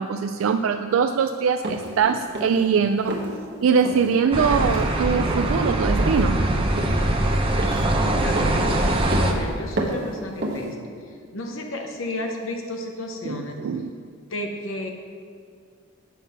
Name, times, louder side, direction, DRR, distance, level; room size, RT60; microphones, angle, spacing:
voice 1, 0.0-3.2 3.6-6.4 13.2-13.9, right 6 dB, 75° right, 7 dB, 0.3 m, -22 dB
sound 1, 1.6-1.9 2.3-2.7 3.1-3.3 3.8-4.1 4.5-4.9 5.3-5.6 6.0-6.3 6.8-7.1 7.6-7.9 8.4-8.6 9.1-9.4 9.8-10.1 10.4-10.7, right 1 dB, 60° right, 1.2 m, -30 dB
sound 2, 4.3-9.3, right 1 dB, 25° right, 0.8 m, -22 dB
sound 3, 4.5-9.9, right 1 dB, 10° left, 0.8 m, -38 dB
voice 2, 8.0-10.7 11.1-13.5 14.3-14.9, left 1 dB, 70° left, 2 dB, 0.8 m, -33 dB
9.1 x 5.8 x 5.6 m, 2.1 s
head